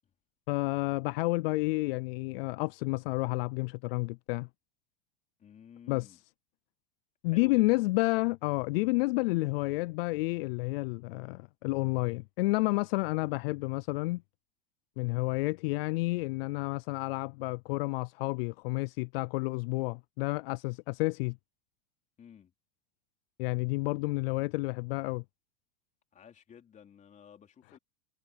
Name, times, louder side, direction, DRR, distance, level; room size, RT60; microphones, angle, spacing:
voice 1, 0.5-4.5 5.9-6.1 7.2-14.2 15.0-21.4 23.4-25.2, left 24 dB, 70° left, 0.4 m, -30 dB
voice 2, 5.4-6.2 7.3-7.8 22.2-22.5 26.1-27.8, left 8 dB, 25° left, 3.8 m, -53 dB
supercardioid pair, 140°, 30 cm